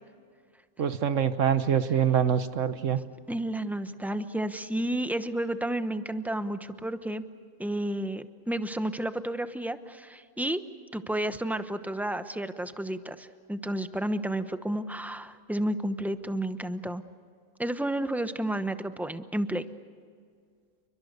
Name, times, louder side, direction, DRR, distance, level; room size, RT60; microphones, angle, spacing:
voice 1, 0.8-3.0, right 8 dB, 65° right, 11 dB, 1.4 m, -25 dB
voice 2, 3.3-7.2 7.6-10.6 10.9-17.0 17.6-19.6, right 1 dB, ahead, 10 dB, 0.7 m, -31 dB
29.0 x 23.5 x 6.7 m, 2.1 s
omnidirectional pair, 1.5 m